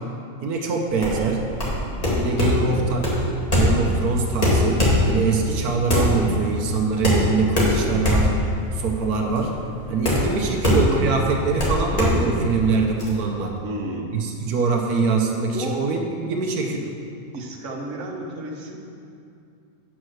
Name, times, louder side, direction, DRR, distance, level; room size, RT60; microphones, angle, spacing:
voice 1, 0.4-1.4 2.1-3.1 3.5-4.8 5.0-8.3 8.7-9.5 9.9-13.6 14.1-16.9, right 4 dB, 85° right, 1 dB, 1.3 m, -23 dB
sound 1, 0.9-13.1, left 1 dB, 25° left, 1.9 m, -22 dB
voice 2, 0.9-1.8 10.3-10.4 13.6-14.1 15.5-15.8 17.3-18.8, right 2 dB, 60° right, 0 dB, 1.3 m, -32 dB
8.2 x 6.1 x 6.4 m, 2.5 s
omnidirectional pair, 1.6 m